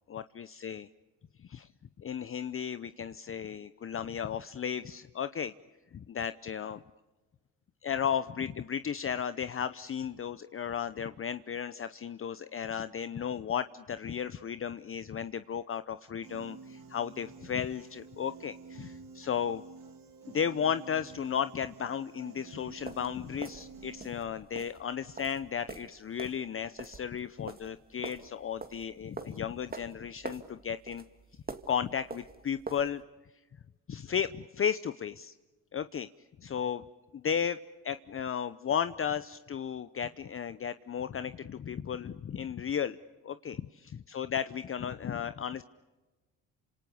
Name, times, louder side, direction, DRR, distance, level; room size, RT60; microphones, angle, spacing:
voice 1, 0.1-0.9 1.4-1.7 2.0-5.5 5.9-6.8 7.8-19.6 20.3-31.0 31.7-33.0 33.9-35.3 35.7-36.1 36.4-36.8 37.1-37.6 37.8-43.0 43.2-45.6, left 8 dB, 35° left, 13 dB, 0.8 m, -34 dB
Piano, 16.2-24.2, right 5 dB, 65° right, 3.3 m, -50 dB
sound 1, 22.7-33.0, right 4 dB, 25° right, 2.2 m, -45 dB
28.0 x 27.0 x 7.0 m, 1.2 s
supercardioid pair, 75°, 36 cm